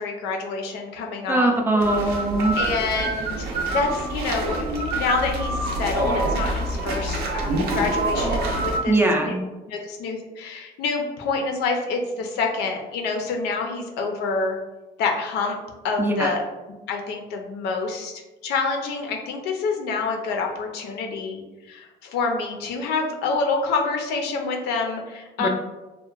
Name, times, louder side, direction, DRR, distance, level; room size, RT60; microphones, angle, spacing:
voice 1, 0.0-1.5 2.6-3.5 3.7-4.6 4.9-9.3 9.7-14.6 15.0-15.6 15.8-16.4 16.9-21.4 21.7-25.5, left 4 dB, 85° left, 2 dB, 0.5 m, -27 dB
voice 2, 1.3-2.6 8.9-9.4 16.0-16.3 25.4-25.5, right 2 dB, 15° right, 1 dB, 0.3 m, -21 dB
sound 1, 1.8-8.8, right 2 dB, 75° right, 0.5 m, -26 dB
2.8 x 2.1 x 2.4 m, 1.1 s
cardioid pair, 110°, 17 cm